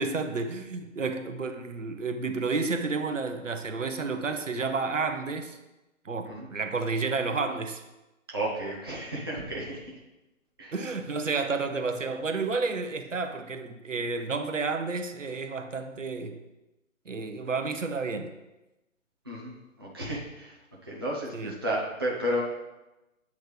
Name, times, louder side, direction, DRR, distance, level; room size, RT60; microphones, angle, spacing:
voice 1, 0.0-5.6 6.0-7.8 10.7-16.4 17.1-18.3 21.3-21.6, right 4 dB, 65° right, 6 dB, 0.8 m, -31 dB
voice 2, 8.3-9.8 10.6-10.7 19.3-20.5 20.8-22.4, right 1 dB, 20° right, -5 dB, 0.5 m, -32 dB
8.1 x 3.2 x 5.1 m, 1.0 s
figure-of-eight pair, 140°, 40 cm